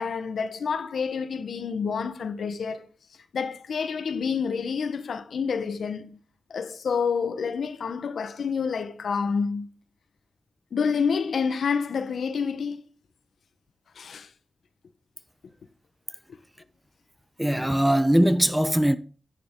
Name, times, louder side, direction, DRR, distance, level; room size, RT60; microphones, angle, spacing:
voice 1, 0.0-2.9 3.3-6.2 6.5-9.7 10.7-12.8 14.0-14.3, left 6 dB, 85° left, 1.1 m, -28 dB
voice 2, 17.4-19.0, equal, 5° right, 0.7 m, -21 dB
10.0 x 8.8 x 3.8 m
cardioid pair, 80°, 0 cm